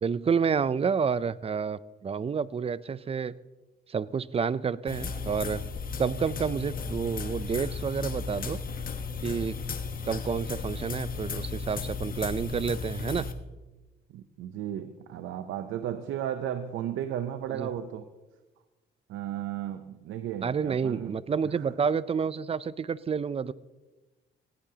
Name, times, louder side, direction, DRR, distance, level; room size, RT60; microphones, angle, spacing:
voice 1, 0.0-3.3 3.9-5.6 6.0-8.6 9.2-9.8 10.1-13.3 17.5-17.7 20.4-23.5, right 6 dB, 30° right, 19 dB, 0.5 m, -29 dB
sound 1, 4.9-13.3, left 5 dB, 45° left, 1.2 m, -35 dB
voice 2, 14.1-18.1 19.1-21.2 21.6-21.7, right 10 dB, 85° right, 10 dB, 0.7 m, -34 dB
18.5 x 17.0 x 2.9 m, 1.2 s
cardioid pair, 90°, 20 cm